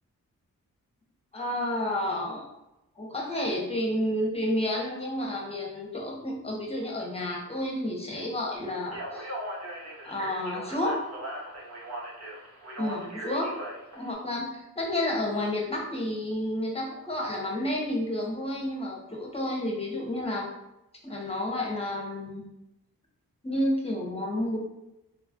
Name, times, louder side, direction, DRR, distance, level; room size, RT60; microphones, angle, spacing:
voice 1, 1.3-2.5 3.0-9.3 10.0-11.1 12.8-13.6 13.9-20.5 21.0-22.4 23.4-24.6, left 1 dB, 15° left, -1 dB, 1.0 m, -30 dB
Speech, 8.8-14.1, right 1 dB, 45° right, 0.9 m, -39 dB
3.1 x 2.0 x 2.5 m, 0.91 s
cardioid pair, 40°, 36 cm